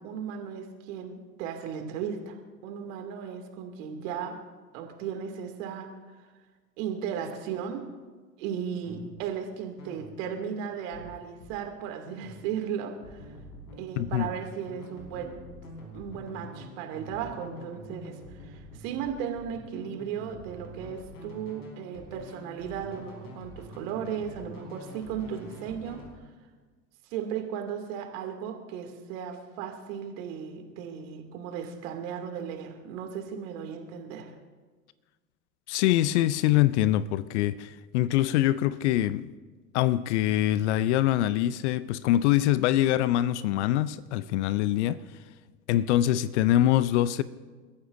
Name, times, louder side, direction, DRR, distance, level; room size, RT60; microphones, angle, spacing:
voice 1, 0.0-2.4 2.6-4.4 4.7-5.9 6.8-7.8 8.4-13.2 13.7-15.4 15.9-26.0 27.1-34.3, right 8 dB, 55° right, 2.5 m, -36 dB
sound 1, 8.8-9.2 9.8-10.2 10.9-11.7 12.1-12.5 13.0-26.1, equal, 75° left, 5.0 m, -46 dB
voice 2, 14.0-14.3 35.7-39.3 39.7-45.0 45.7-47.2, left 13 dB, 50° left, 0.6 m, -24 dB
29.5 x 14.0 x 2.6 m
figure-of-eight pair, 90°, 47 cm